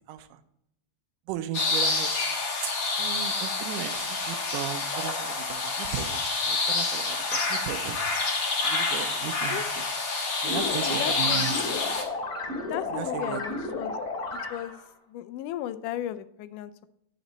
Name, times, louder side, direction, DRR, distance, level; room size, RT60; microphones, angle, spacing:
voice 1, 0.1-0.4 1.3-2.1 2.6-2.7 3.0-8.0 8.6-9.9 10.4-11.5 12.9-13.4, right 11 dB, 85° right, 11 dB, 2.1 m, -36 dB
sound 1, 1.5-12.0, left 3 dB, 55° left, 1.1 m, -28 dB
voice 2, 10.4-11.5 12.6-13.9 14.5-14.8 15.1-16.9, left 12 dB, 85° left, 13 dB, 2.1 m, -35 dB
sound 2, 10.5-14.9, left 3 dB, 25° left, 2.6 m, -33 dB
10.0 x 5.4 x 4.0 m, 0.78 s
omnidirectional pair, 3.6 m